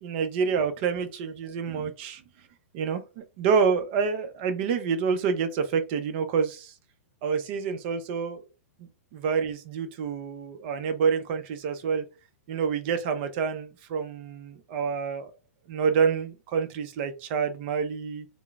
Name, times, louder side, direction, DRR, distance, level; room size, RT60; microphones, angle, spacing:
voice 1, 0.0-2.2 2.7-6.7 7.2-8.4 8.8-12.0 12.5-15.3 15.7-18.3, right 6 dB, 45° right, 0.5 m, -28 dB
3.6 x 2.0 x 2.3 m
hypercardioid pair, 125°, 8 cm